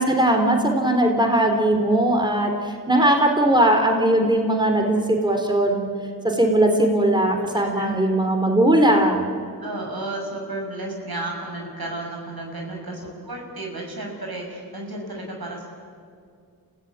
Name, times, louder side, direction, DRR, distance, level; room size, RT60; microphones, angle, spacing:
voice 1, 0.0-5.9 6.2-9.3, right 1 dB, 10° right, 3 dB, 3.6 m, -19 dB
voice 2, 7.6-8.0 9.6-15.7, right 2 dB, 75° right, 1 dB, 6.0 m, -32 dB
29.5 x 16.0 x 8.8 m, 2.3 s
wide cardioid pair, 55°, 37 cm